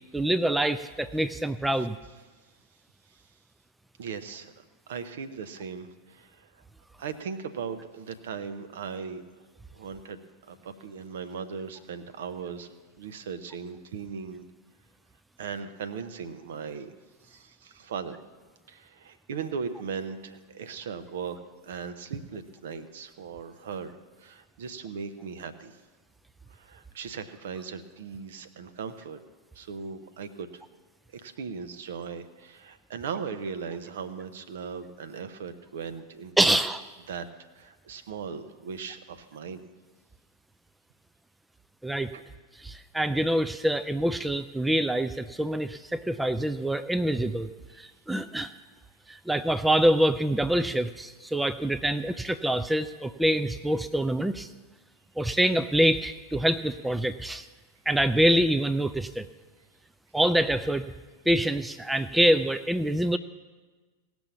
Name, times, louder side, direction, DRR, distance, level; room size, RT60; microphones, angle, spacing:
voice 1, 0.1-2.0 36.4-36.8 41.8-42.1 42.6-47.5 47.8-48.5 49.1-54.5 55.2-57.5 57.9-59.3 60.1-60.9 61.3-63.2, right 1 dB, 5° right, 11 dB, 0.4 m, -25 dB
voice 2, 4.0-4.5 4.9-6.5 7.0-9.2 9.7-12.7 13.0-14.4 15.4-16.9 17.2-18.2 18.7-21.4 21.6-25.8 26.5-29.2 29.5-30.6 31.1-36.6 37.1-37.3 37.6-39.7 42.1-42.2, right 6 dB, 60° right, 10 dB, 0.8 m, -38 dB
17.5 x 6.2 x 7.0 m, 1.3 s
figure-of-eight pair, 90°, 0 cm